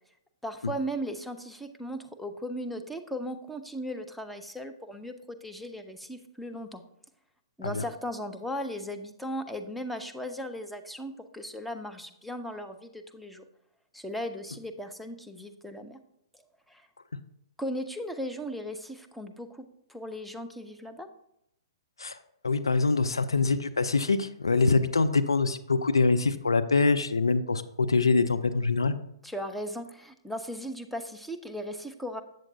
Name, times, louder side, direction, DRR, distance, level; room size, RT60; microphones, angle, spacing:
voice 1, 0.4-6.8 7.6-13.4 13.9-16.0 16.7-16.9 17.6-21.1 29.2-32.2, equal, ahead, 6 dB, 0.5 m, -37 dB
voice 2, 22.4-28.9, left 4 dB, 85° left, 11 dB, 0.4 m, -24 dB
7.6 x 7.2 x 2.6 m, 0.79 s
figure-of-eight pair, 120°, 2 cm